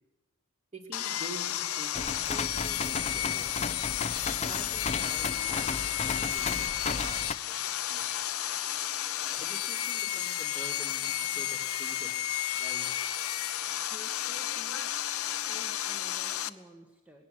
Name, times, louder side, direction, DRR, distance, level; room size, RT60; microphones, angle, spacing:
voice 1, 0.7-3.7 4.4-8.1 9.2-12.2 12.6-12.8, right 1 dB, 30° right, 1 dB, 4.1 m, -47 dB
Sawing, 0.9-16.5, left 12 dB, 70° left, 0.9 m, -32 dB
sound 1, 1.9-7.3, left 4 dB, 30° left, 0.7 m, -34 dB
voice 2, 13.8-14.9 15.5-17.3, left 1 dB, 5° right, 1 dB, 1.8 m, -52 dB
20.0 x 18.5 x 7.5 m, 1.1 s
head